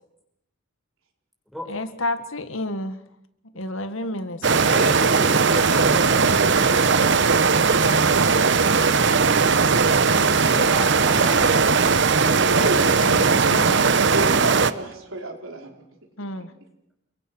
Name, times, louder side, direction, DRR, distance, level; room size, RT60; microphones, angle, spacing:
voice 1, 1.7-3.0 3.5-4.7 7.8-8.0 12.8-14.1 16.2-16.5, left 1 dB, 70° left, 10 dB, 1.8 m, -31 dB
voice 2, 4.4-7.3 10.5-11.8, equal, ahead, 1 dB, 6.1 m, -34 dB
Waterfall stream close, 4.4-14.7, right 5 dB, 55° right, 1.0 m, -18 dB
voice 3, 12.5-15.7, right 2 dB, 75° right, 2 dB, 4.8 m, -32 dB
30.0 x 23.5 x 6.3 m, 0.77 s
head